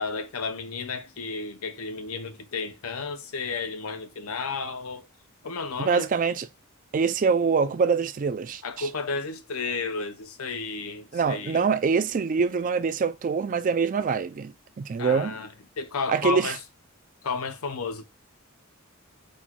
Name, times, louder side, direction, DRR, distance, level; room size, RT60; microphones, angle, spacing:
voice 1, 0.0-5.1 5.4-6.1 8.6-11.6 15.0-15.5 15.8-16.6 17.2-18.0, left 4 dB, 80° left, 0.7 m, -32 dB
voice 2, 5.8-6.5 6.9-8.9 11.1-15.4 16.1-16.6, right 5 dB, 40° right, 0.3 m, -24 dB
4.4 x 2.3 x 4.3 m
head